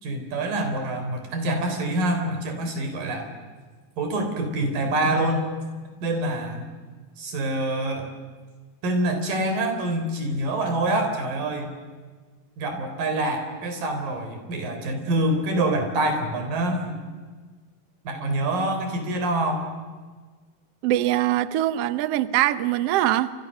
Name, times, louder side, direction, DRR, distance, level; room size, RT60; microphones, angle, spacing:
voice 1, 0.0-3.3 4.0-5.5 6.0-6.7 7.2-8.1 8.8-11.7 12.6-17.0 18.1-19.6, right 1 dB, 65° right, 5 dB, 5.6 m, -26 dB
voice 2, 20.8-23.3, right 14 dB, 85° right, 14 dB, 1.3 m, -22 dB
29.5 x 26.5 x 6.6 m, 1.4 s
omnidirectional pair, 4.1 m